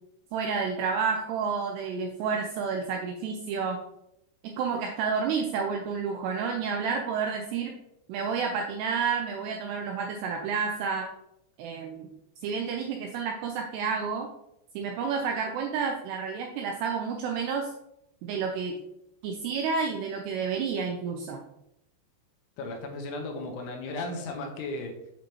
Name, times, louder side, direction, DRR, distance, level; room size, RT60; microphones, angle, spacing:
voice 1, 0.3-3.8 4.4-7.8 8.1-11.0 11.6-12.1 12.4-14.3 14.8-17.7 18.2-18.8 19.2-21.4, right 5 dB, 85° right, 2 dB, 2.4 m, -30 dB
voice 2, 22.6-25.0, left 2 dB, 85° left, 3 dB, 3.4 m, -35 dB
8.1 x 5.0 x 3.0 m, 0.81 s
omnidirectional pair, 5.4 m